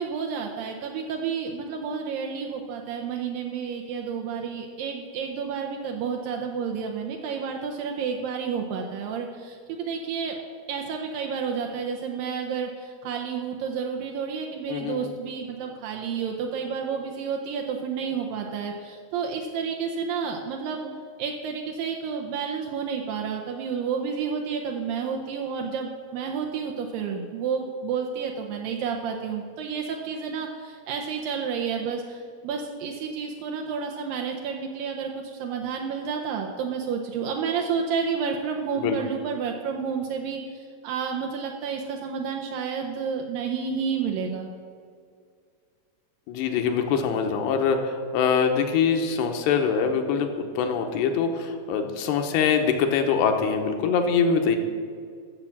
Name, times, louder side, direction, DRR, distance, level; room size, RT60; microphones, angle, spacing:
voice 1, 0.0-10.4 10.7-20.9 21.2-44.5, right 6 dB, 85° right, 2 dB, 2.0 m, -30 dB
voice 2, 14.7-15.1 38.8-39.0 46.3-54.6, left 6 dB, 80° left, 5 dB, 2.8 m, -24 dB
12.0 x 7.1 x 7.2 m, 2.1 s
omnidirectional pair, 5.1 m